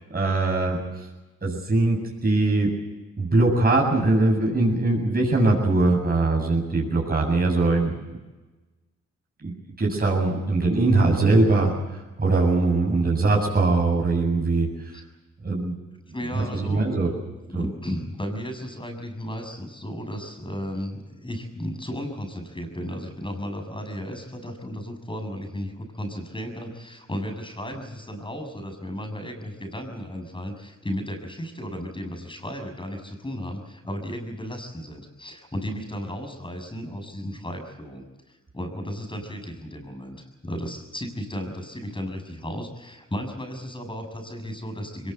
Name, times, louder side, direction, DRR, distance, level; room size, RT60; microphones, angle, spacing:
voice 1, 0.1-0.9 1.4-2.8 3.2-8.0 9.4-14.7 15.4-15.8 16.3-17.1 17.5-17.7, right 2 dB, 30° right, -1 dB, 7.8 m, -21 dB
voice 2, 16.1-17.2 17.5-45.1, equal, 15° left, 6 dB, 7.1 m, -34 dB
22.5 x 20.5 x 8.1 m, 1.2 s
supercardioid pair, 65°, 30 cm